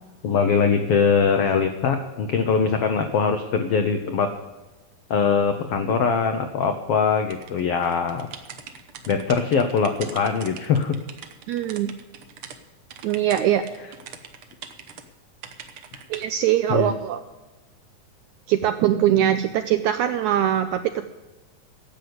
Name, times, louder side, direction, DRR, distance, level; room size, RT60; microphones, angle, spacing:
voice 1, 0.2-4.3 5.1-8.3 9.1-11.0 16.7-16.9, left 6 dB, 90° left, 6 dB, 1.3 m, -22 dB
sound 1, 7.3-12.6 12.9-15.0 15.4-16.3, right 7 dB, 70° right, 1.3 m, -41 dB
voice 2, 11.5-11.9 13.0-13.6 16.1-17.2 18.5-21.0, right 11 dB, 90° right, 9 dB, 1.7 m, -22 dB
11.0 x 8.0 x 9.4 m, 1.1 s
omnidirectional pair, 4.0 m